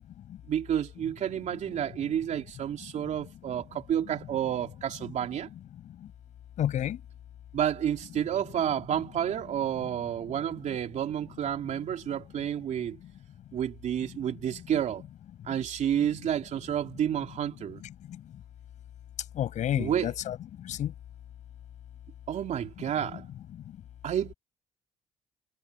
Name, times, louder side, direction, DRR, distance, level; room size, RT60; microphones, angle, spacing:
voice 1, 0.5-5.5 7.5-13.0 13.5-15.0 15.4-17.8 19.7-20.1 22.3-23.2 24.0-24.3, right 10 dB, 70° right, 3.2 m, -30 dB
voice 2, 6.6-7.0 19.3-20.9, left 11 dB, 75° left, 6.7 m, -30 dB
supercardioid pair, 65°, 13 cm